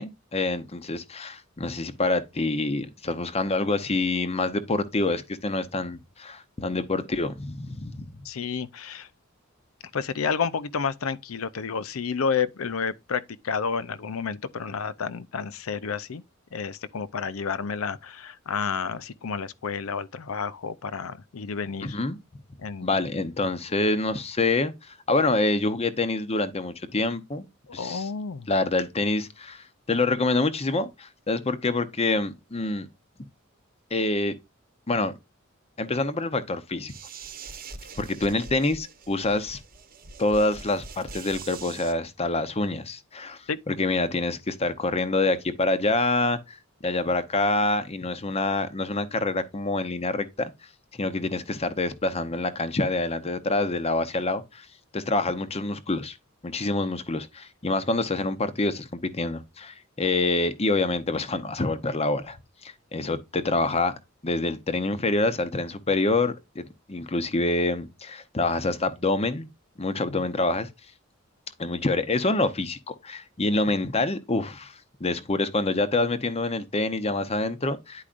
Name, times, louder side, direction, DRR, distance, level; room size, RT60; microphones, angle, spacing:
voice 1, 0.0-8.1 21.8-22.2 22.8-24.7 25.1-27.5 27.7-28.1 28.5-32.9 33.9-34.3 34.9-35.1 35.8-36.9 38.0-39.6 40.2-43.4 43.7-46.6 46.8-50.5 51.0-54.7 54.9-56.2 56.4-62.4 62.6-63.9 64.2-69.5 69.8-70.7 71.6-78.0, left 2 dB, 30° left, 0.8 m, -26 dB
voice 2, 8.2-9.1 9.9-16.2 16.5-22.0 22.6-22.9 27.7-28.5 43.5-43.6 63.1-63.2 70.1-70.2, left 6 dB, 80° left, 0.6 m, -30 dB
sound 1, 36.9-41.9, right 4 dB, 45° right, 1.0 m, -43 dB
10.0 x 4.8 x 2.5 m
head